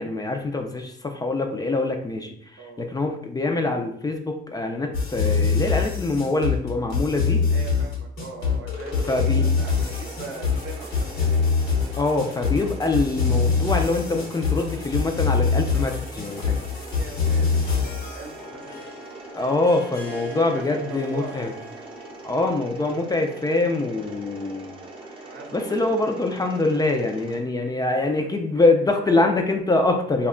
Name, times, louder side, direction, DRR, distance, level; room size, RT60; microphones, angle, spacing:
voice 1, 0.0-2.3 2.8-7.5 9.1-9.5 12.0-16.6 19.3-21.5 22.2-24.8 25.5-30.3, left 2 dB, 20° left, 4 dB, 0.3 m, -24 dB
sound 1, 4.9-18.2, left 5 dB, 80° left, 1.0 m, -24 dB
voice 2, 7.5-11.4 16.9-19.0 20.1-20.2 20.5-21.5 25.2-26.3 28.0-28.3 28.5-28.6 29.0-29.3, right 4 dB, 80° right, 2 dB, 0.6 m, -41 dB
Mechanisms, 8.9-27.4, right 2 dB, 25° right, 0.6 m, -42 dB
Harp, 17.2-22.5, right 1 dB, 50° left, 0.7 m, -41 dB
2.2 x 2.0 x 3.6 m, 0.66 s
cardioid pair, 90°, 20 cm